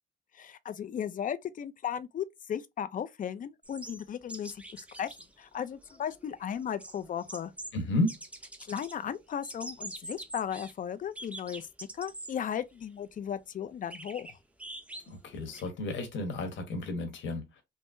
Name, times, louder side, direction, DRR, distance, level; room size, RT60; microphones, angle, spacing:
voice 1, 0.3-7.5 8.6-11.7 11.9-14.3, left 9 dB, 45° left, 0.4 m, -36 dB
sound 1, 3.6-5.3 5.5-5.6 5.8-7.8 8.1-9.0 9.3-10.7 11.2-12.3 12.8-12.9 13.9-15.7, right 1 dB, 5° right, 0.6 m, -45 dB
voice 2, 7.7-8.2 15.1-17.6, left 2 dB, 70° left, 1.2 m, -32 dB
3.6 x 2.0 x 2.6 m
cardioid pair, 90°, 20 cm